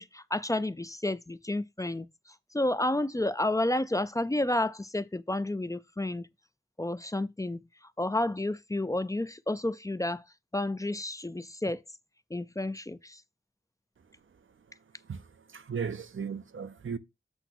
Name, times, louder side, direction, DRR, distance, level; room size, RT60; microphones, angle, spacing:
voice 1, 0.0-2.1 2.5-6.3 6.8-7.7 8.0-10.2 10.5-11.8 12.3-13.2, left 1 dB, 15° left, 0.4 m, -30 dB
voice 2, 15.0-17.0, right 6 dB, 90° right, 0.6 m, -36 dB
8.0 x 3.0 x 6.0 m
wide cardioid pair, 75°, 20 cm